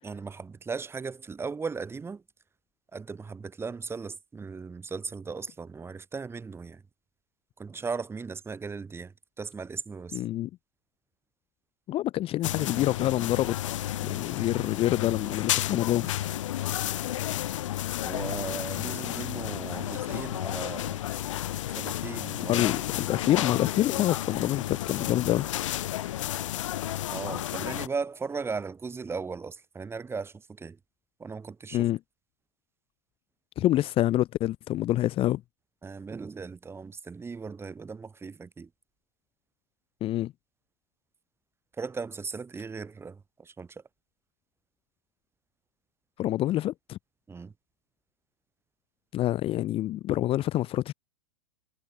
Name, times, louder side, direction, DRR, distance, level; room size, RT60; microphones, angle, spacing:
voice 1, 0.0-2.2 2.9-6.8 7.6-10.2 18.0-21.0 21.7-22.7 27.1-30.8 31.2-31.9 35.8-38.7 41.8-43.8 47.3-47.5, right 5 dB, 15° right, 6.6 m, -37 dB
voice 2, 10.1-10.5 11.9-13.6 14.0-16.1 22.5-25.5 31.7-32.0 33.6-35.4 40.0-40.3 46.2-47.0 49.1-50.9, left 14 dB, 30° left, 2.3 m, -27 dB
sound 1, 12.4-27.9, left 13 dB, 55° left, 2.1 m, -32 dB
figure-of-eight pair, 100°, 19 cm